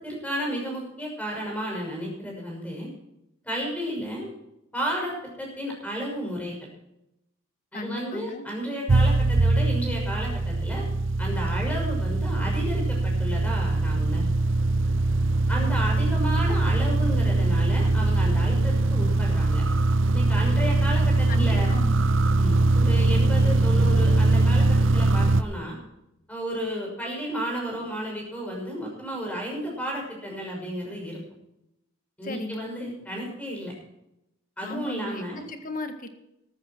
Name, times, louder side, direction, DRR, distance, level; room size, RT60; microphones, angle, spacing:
voice 1, 0.0-2.9 3.4-4.3 4.7-6.6 7.7-10.9 11.2-14.3 15.5-19.6 20.1-21.7 22.4-25.8 26.3-31.2 32.2-33.7 34.6-35.5, equal, 5° left, -1 dB, 6.2 m, -32 dB
voice 2, 7.7-8.4 21.3-22.1 32.2-32.7 34.6-36.1, left 1 dB, 45° left, 7 dB, 1.7 m, -36 dB
sound 1, 8.9-25.4, right 2 dB, 70° right, 0.7 m, -22 dB
15.0 x 13.0 x 4.5 m, 0.85 s
head